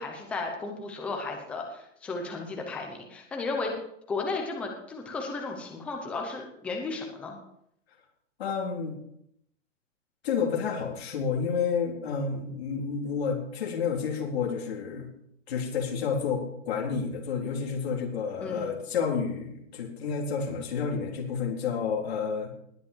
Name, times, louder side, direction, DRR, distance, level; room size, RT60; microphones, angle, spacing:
voice 1, 0.0-3.7 4.1-7.4 18.4-18.7, left 3 dB, 5° left, 1 dB, 0.8 m, -34 dB
voice 2, 8.4-9.0 10.2-15.1 15.5-22.5, left 6 dB, 55° left, 0 dB, 3.9 m, -30 dB
20.0 x 8.1 x 4.6 m, 0.74 s
hypercardioid pair, 180°, 38 cm